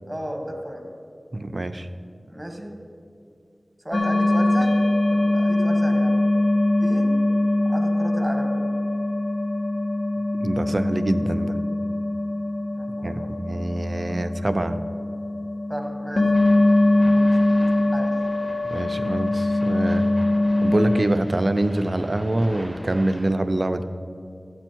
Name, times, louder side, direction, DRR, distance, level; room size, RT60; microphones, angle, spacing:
voice 1, 0.1-0.9 2.2-2.7 3.8-4.8 5.0-6.2 6.8-7.1 7.7-8.5 12.7-13.3 15.7-17.2 17.9-18.1, equal, 10° right, 3 dB, 1.6 m, -34 dB
voice 2, 1.3-1.9 10.4-11.6 13.0-14.8 18.7-20.1 20.6-23.8, right 1 dB, 55° right, 9 dB, 0.6 m, -25 dB
sound 1, 3.9-21.0, left 1 dB, 70° left, 0.9 m, -22 dB
sound 2, 16.3-23.2, equal, 15° left, 3.1 m, -42 dB
13.5 x 8.6 x 4.6 m, 2.4 s
wide cardioid pair, 40°, 0 cm